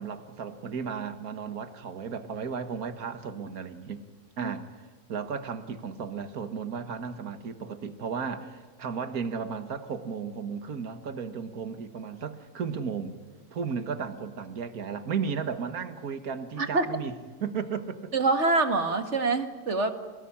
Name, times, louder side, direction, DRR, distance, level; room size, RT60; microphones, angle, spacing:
voice 1, 0.0-4.1 4.4-4.7 5.1-13.2 13.5-17.2 17.4-18.1, right 6 dB, 65° right, 2.0 m, -34 dB
voice 2, 18.1-19.9, right 3 dB, 45° right, 2.2 m, -25 dB
28.5 x 18.0 x 10.0 m
omnidirectional pair, 1.7 m